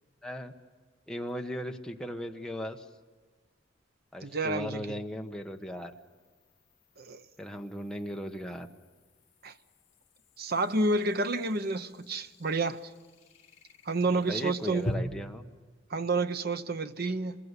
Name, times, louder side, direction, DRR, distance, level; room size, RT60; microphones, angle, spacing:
voice 1, 0.2-0.5 1.1-2.8 4.1-5.9 7.4-8.7 14.1-15.4, equal, 5° left, 1.3 m, -37 dB
sound 1, 1.3-1.4 4.8-14.9, left 1 dB, 40° left, 4.1 m, -47 dB
voice 2, 4.2-5.0 7.0-7.2 9.4-9.5 10.4-12.8 13.8-14.9 15.9-17.4, right 2 dB, 55° right, 1.0 m, -29 dB
27.0 x 21.5 x 8.3 m
head